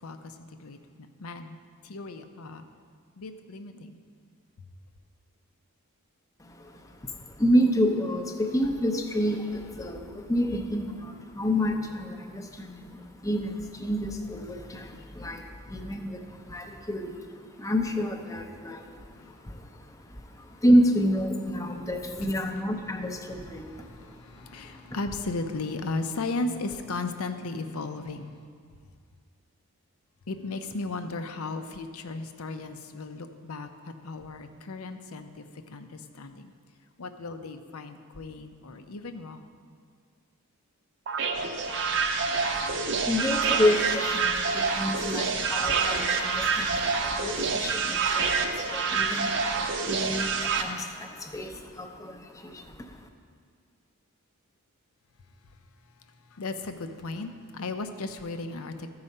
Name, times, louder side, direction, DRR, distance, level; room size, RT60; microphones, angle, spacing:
voice 1, 0.0-1.6 1.8-2.6 3.2-4.0 19.2-19.3 22.2-22.4 23.6-28.3 30.3-36.5 37.0-39.5 56.3-58.9, left 3 dB, 75° left, 8 dB, 0.6 m, -36 dB
voice 2, 6.4-25.0 42.3-53.1, equal, 15° left, 5 dB, 0.6 m, -29 dB
sound 1, 41.1-50.6, right 5 dB, 55° right, 0.7 m, -27 dB
13.5 x 4.8 x 5.4 m, 2.1 s
head